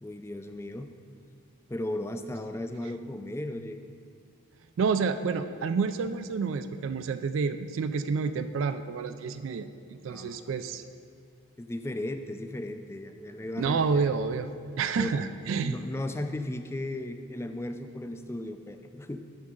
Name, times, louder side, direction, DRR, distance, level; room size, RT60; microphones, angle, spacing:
voice 1, 0.0-0.9 1.7-3.8 10.0-10.5 11.6-14.1 15.0-15.1 15.6-19.2, left 1 dB, 10° left, 7 dB, 0.3 m, -36 dB
voice 2, 4.8-10.8 13.6-14.5 14.8-15.8, right 5 dB, 70° right, 10 dB, 0.3 m, -29 dB
11.5 x 6.4 x 3.8 m, 2.2 s
head